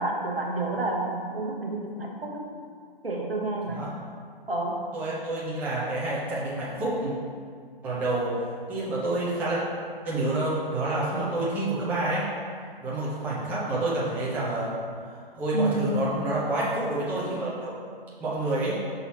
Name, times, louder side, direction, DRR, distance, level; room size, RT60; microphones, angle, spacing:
voice 1, 0.0-2.5 3.0-3.9 4.5-4.8 15.5-16.0, right 2 dB, 75° right, -1 dB, 1.1 m, -29 dB
voice 2, 4.9-7.1 7.8-8.3 8.7-9.6 10.0-12.3 12.8-14.7 15.1-17.7 18.2-18.8, right 2 dB, 5° right, -8 dB, 0.6 m, -28 dB
6.0 x 4.0 x 4.2 m, 2.1 s
figure-of-eight pair, 130°, 29 cm